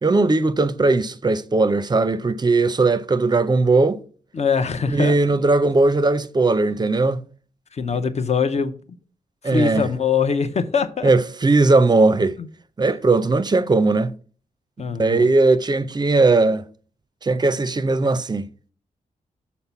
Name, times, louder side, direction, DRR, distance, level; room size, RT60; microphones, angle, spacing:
voice 1, 0.0-4.0 4.9-7.2 7.9-8.0 9.4-9.9 11.0-12.4 12.8-14.1 14.9-16.6 17.2-18.5, right 3 dB, 30° right, 0.5 m, -18 dB
voice 2, 4.3-5.2 7.7-8.7 9.4-11.1 14.8-15.3, left 6 dB, 50° left, 0.7 m, -22 dB
5.7 x 4.2 x 5.6 m
cardioid pair, 60°, 15 cm